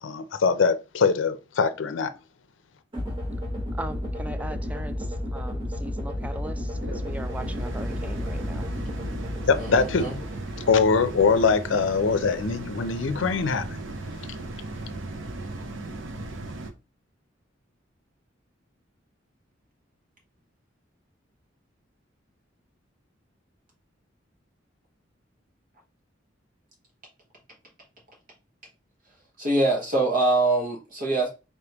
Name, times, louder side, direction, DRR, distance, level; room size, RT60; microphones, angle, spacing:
voice 1, 0.0-2.1 9.5-10.1 10.7-13.8, left 5 dB, 80° left, 0.5 m, -22 dB
sound 1, 2.9-11.1, left 1 dB, 25° right, 1.5 m, -32 dB
voice 2, 3.8-5.1 5.3-8.7, right 1 dB, 10° right, 0.3 m, -39 dB
sound 2, 5.5-16.7, right 2 dB, 90° right, 0.7 m, -37 dB
sound 3, 6.7-14.5, left 2 dB, 65° right, 1.7 m, -46 dB
voice 3, 9.6-10.2 29.4-31.3, right 2 dB, 50° right, 1.1 m, -24 dB
4.2 x 3.4 x 2.9 m
head